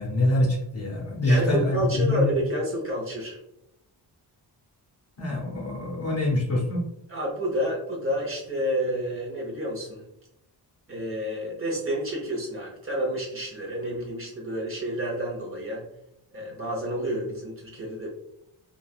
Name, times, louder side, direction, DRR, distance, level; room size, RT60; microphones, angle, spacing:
voice 1, 0.0-2.4 5.2-6.9, left 1 dB, 35° left, -2 dB, 0.7 m, -25 dB
voice 2, 1.3-3.4 7.1-10.0 10.9-15.8 16.3-18.1, equal, 30° right, -3 dB, 0.7 m, -29 dB
3.1 x 2.2 x 2.3 m, 0.82 s
wide cardioid pair, 170°, 43 cm